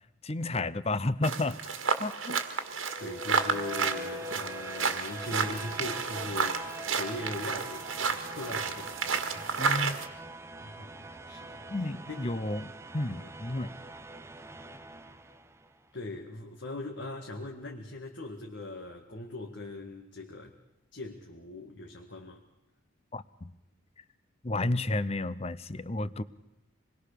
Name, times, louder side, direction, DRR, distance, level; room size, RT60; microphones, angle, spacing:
voice 1, 0.2-1.7 2.0-2.4 9.6-10.0 11.7-13.8 23.1-23.5 24.4-26.2, left 2 dB, 30° left, 16 dB, 0.7 m, -32 dB
sound 1, 1.2-10.1, right 5 dB, 75° right, 1.9 m, -31 dB
voice 2, 2.7-9.0 9.3-9.6 10.6-12.4 13.1-13.3 15.9-20.6 20.9-22.4, left 2 dB, 55° left, 2 dB, 1.8 m, -41 dB
sound 2, 2.8-15.8, right 1 dB, 15° right, 0.8 m, -44 dB
26.5 x 21.0 x 6.7 m, 0.94 s
head